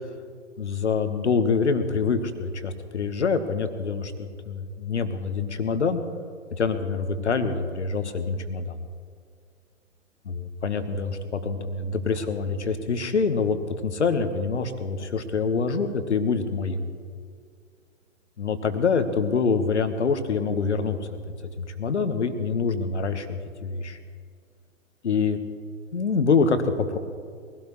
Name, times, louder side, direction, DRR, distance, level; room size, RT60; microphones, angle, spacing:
voice 1, 0.6-6.0 6.6-8.8 10.3-10.4 10.6-13.6 13.8-16.8 18.4-21.0 21.6-24.0 25.0-25.4 25.9-27.0, left 5 dB, 65° left, 9 dB, 1.6 m, -25 dB
22.5 x 17.0 x 3.2 m, 2.2 s
figure-of-eight pair, 115°, 37 cm